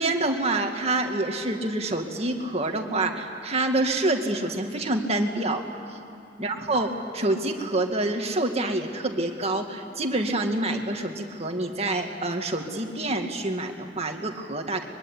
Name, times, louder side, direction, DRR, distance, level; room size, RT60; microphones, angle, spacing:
voice 1, 0.0-5.6 5.9-6.0 6.4-14.9, right 2 dB, 35° right, 3 dB, 2.2 m, -27 dB
24.5 x 22.5 x 9.9 m, 2.9 s
head